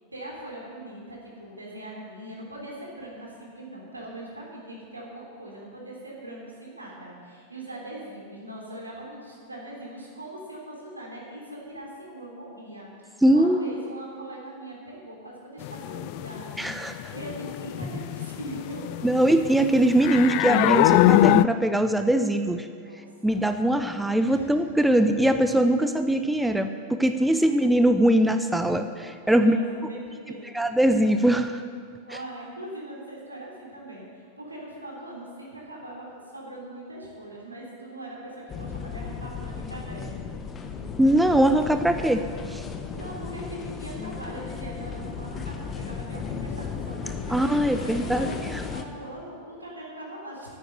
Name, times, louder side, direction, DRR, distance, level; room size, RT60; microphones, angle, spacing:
voice 1, 0.1-19.0 22.8-23.4 24.3-24.6 27.4-27.7 29.3-30.6 32.0-40.3 42.9-50.6, right 1 dB, 80° right, -3 dB, 3.5 m, -41 dB
voice 2, 13.2-13.7 16.6-16.9 19.0-22.7 23.2-29.6 30.5-31.6 41.0-42.2 42.5-42.7 47.3-48.3, right 1 dB, 5° right, 8 dB, 0.6 m, -21 dB
sound 1, 15.6-21.4, left 17 dB, 45° left, 0.3 m, -23 dB
sound 2, 38.5-48.8, left 6 dB, 25° left, 1.2 m, -35 dB
10.0 x 9.4 x 8.9 m, 2.2 s
figure-of-eight pair, 90°, 0 cm